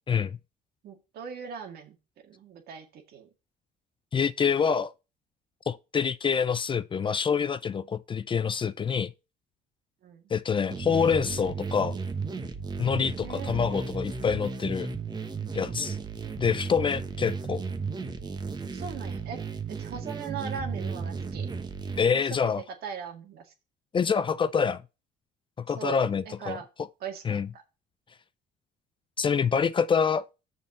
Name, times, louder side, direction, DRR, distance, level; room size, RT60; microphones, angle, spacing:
voice 1, 0.1-0.4 4.1-4.9 5.7-9.1 10.3-12.0 12.8-14.9 15.5-16.0 16.4-17.6 22.0-22.6 23.9-24.8 25.6-26.6 27.2-27.5 29.2-30.3, left 6 dB, 30° left, 0.5 m, -26 dB
voice 2, 0.8-2.0 2.2-3.3 10.0-10.2 13.2-14.0 18.6-19.4 19.7-21.5 22.1-22.4 22.8-23.5 25.7-26.0 26.3-26.7 27.0-27.6, right 7 dB, 65° right, 1.9 m, -40 dB
sound 1, 10.7-22.0, right 4 dB, 25° right, 1.1 m, -34 dB
6.7 x 5.4 x 5.9 m
cardioid pair, 110°, 17 cm